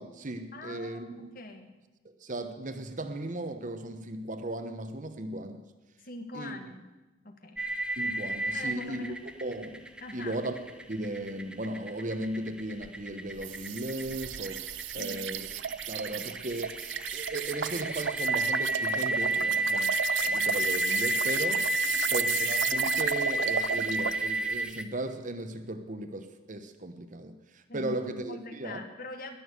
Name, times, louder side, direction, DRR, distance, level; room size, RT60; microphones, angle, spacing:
voice 1, 0.0-1.3 2.0-5.7 6.3-6.6 8.0-9.2 9.4-9.9 10.1-10.6 10.9-14.7 14.9-15.5 15.9-16.8 17.1-21.7 22.1-28.8, right 1 dB, 45° right, 1.1 m, -36 dB
voice 2, 0.5-1.7 6.0-6.9 7.2-7.6 8.5-9.1 10.0-10.4 14.9-15.4 16.0-16.4 21.9-22.3 27.7-29.4, left 2 dB, 50° left, 1.7 m, -43 dB
sound 1, 7.6-24.8, right 1 dB, 5° right, 0.8 m, -31 dB
sound 2, 13.4-24.2, right 9 dB, 85° right, 0.5 m, -34 dB
20.5 x 7.2 x 8.1 m
head